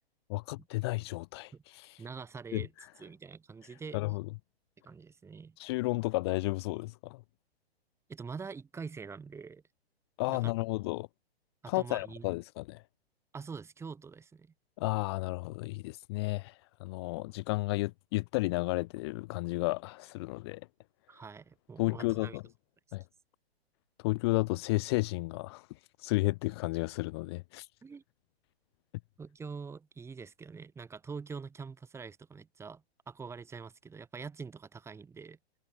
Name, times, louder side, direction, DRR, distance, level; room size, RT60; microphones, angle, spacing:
voice 1, 0.3-2.0 2.5-2.9 3.9-4.2 5.6-7.2 10.2-11.1 11.7-12.8 14.8-20.6 21.8-22.4 22.9-23.0 24.0-25.7 26.0-27.7, left 23 dB, 25° left, 0.6 m, -32 dB
voice 2, 2.0-2.7 3.0-4.0 4.8-5.6 8.1-9.6 10.3-10.5 11.6-12.4 13.3-14.5 21.1-22.4 27.8-28.0 29.2-35.4, right 5 dB, 10° right, 1.8 m, -45 dB
figure-of-eight pair, 120°, 32 cm